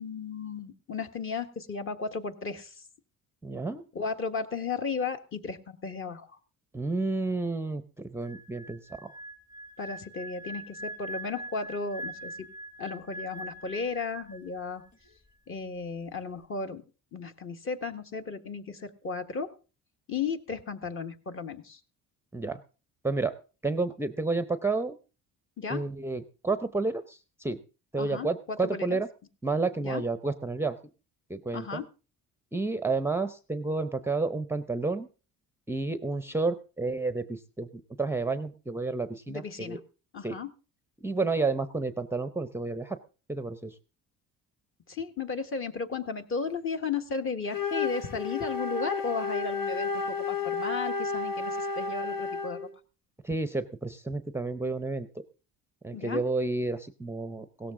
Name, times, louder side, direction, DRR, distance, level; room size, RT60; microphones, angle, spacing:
voice 1, 0.0-2.9 3.9-6.4 9.8-12.5 12.8-14.8 15.5-16.8 17.1-19.5 20.1-21.8 25.6-25.8 28.0-29.0 29.8-30.0 31.5-31.9 39.3-39.8 40.1-40.5 44.9-52.7 55.9-56.3, left 5 dB, 40° left, 7 dB, 1.5 m, -35 dB
voice 2, 3.4-3.8 6.7-9.1 22.3-22.6 23.0-23.3 23.6-25.0 25.7-27.6 27.9-29.1 29.4-30.8 31.3-31.8 32.5-35.1 35.7-39.8 40.2-40.4 41.0-43.0 43.3-43.8 53.2-55.1 55.8-57.7, right 3 dB, 5° right, 11 dB, 0.6 m, -30 dB
sound 1, 8.2-14.6 14.8-15.1, right 1 dB, 20° left, 1.4 m, -42 dB
Wind instrument woodwind instrument, 47.5-52.7, left 4 dB, 75° left, 2.7 m, -32 dB
17.0 x 13.5 x 3.7 m, 0.35 s
cardioid pair, 130°, 34 cm